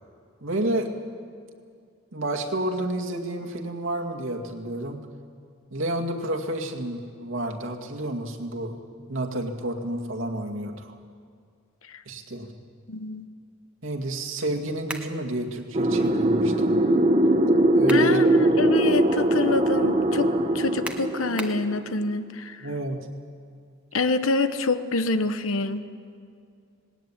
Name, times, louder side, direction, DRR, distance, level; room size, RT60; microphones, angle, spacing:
voice 1, 0.4-0.9 2.1-5.0 5.7-10.9 12.1-12.5 13.8-16.8 17.7-18.4 22.6-23.1, right 1 dB, 70° right, 2 dB, 2.2 m, -30 dB
voice 2, 12.9-13.3 17.9-22.7 23.9-25.8, left 3 dB, 85° left, 10 dB, 1.0 m, -26 dB
sound 1, 14.9-15.2 17.5-18.2 18.7-18.8 20.8-21.7, right 1 dB, 5° right, 1.2 m, -36 dB
sound 2, 15.7-21.9, right 1 dB, 35° right, 1.1 m, -21 dB
19.0 x 18.5 x 8.9 m, 2.3 s
head